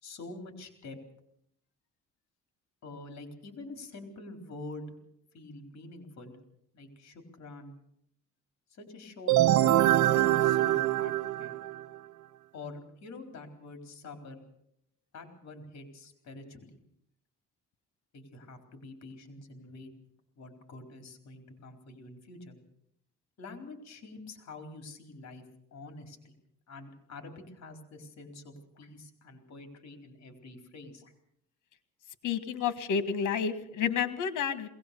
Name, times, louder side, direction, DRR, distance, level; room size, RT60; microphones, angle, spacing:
voice 1, 0.0-1.0 2.8-4.9 5.3-6.4 6.7-7.8 8.7-11.1 11.4-11.6 12.5-14.4 15.1-16.8 18.1-19.9 20.4-22.5 23.4-25.4 25.7-26.3 26.7-31.1, left 2 dB, 60° left, 5 dB, 4.2 m, -46 dB
sound 1, 9.3-12.0, right 14 dB, 70° right, 0.8 m, -24 dB
voice 2, 32.2-34.7, left 7 dB, 85° left, 12 dB, 1.7 m, -30 dB
21.0 x 18.5 x 6.9 m, 0.73 s
cardioid pair, 90°, 30 cm